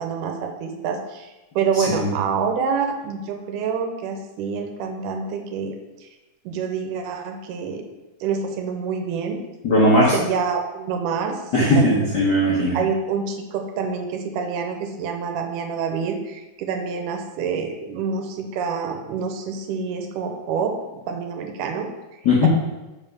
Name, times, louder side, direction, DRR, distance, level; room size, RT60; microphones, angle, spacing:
voice 1, 0.0-5.8 6.0-6.1 6.5-7.8 8.2-9.4 10.1-12.0 12.7-21.9 22.1-22.5, right 6 dB, 75° right, 4 dB, 2.3 m, -27 dB
voice 2, 1.8-2.1 9.6-10.1 11.5-12.8 22.2-22.5, left 1 dB, 80° left, -6 dB, 0.9 m, -18 dB
5.6 x 5.1 x 6.1 m, 1.1 s
omnidirectional pair, 3.9 m